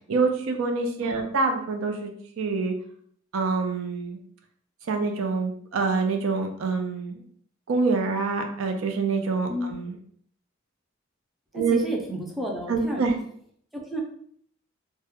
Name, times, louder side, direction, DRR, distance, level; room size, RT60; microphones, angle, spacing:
voice 1, 0.1-2.1 2.4-2.7 3.3-4.2 4.9-7.2 7.7-9.9 11.5-11.8 12.7-13.1, right 4 dB, 90° right, 4 dB, 0.4 m, -26 dB
voice 2, 11.5-13.0 13.7-14.0, equal, ahead, -2 dB, 0.3 m, -31 dB
2.3 x 2.0 x 2.8 m, 0.62 s
head